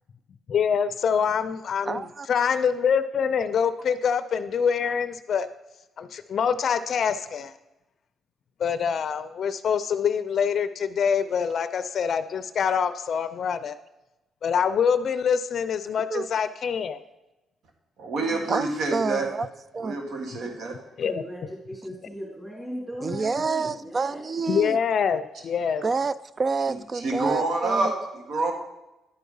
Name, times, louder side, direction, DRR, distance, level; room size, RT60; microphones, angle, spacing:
voice 1, 0.5-5.5 6.0-7.5 8.6-13.7 14.4-17.0 21.0-21.2 24.5-25.8, left 7 dB, 55° left, 12 dB, 0.5 m, -25 dB
voice 2, 1.9-2.3 16.1-16.3 18.5-19.5 19.7-20.0 23.0-24.8 25.8-27.9, right 4 dB, 35° right, 17 dB, 0.4 m, -28 dB
voice 3, 18.0-19.3 19.8-20.8 26.9-28.5, right 3 dB, 65° right, 2 dB, 1.7 m, -27 dB
voice 4, 21.0-24.2, equal, 5° right, -5 dB, 2.8 m, -37 dB
10.5 x 4.7 x 5.4 m, 0.98 s
cardioid pair, 90°, 0 cm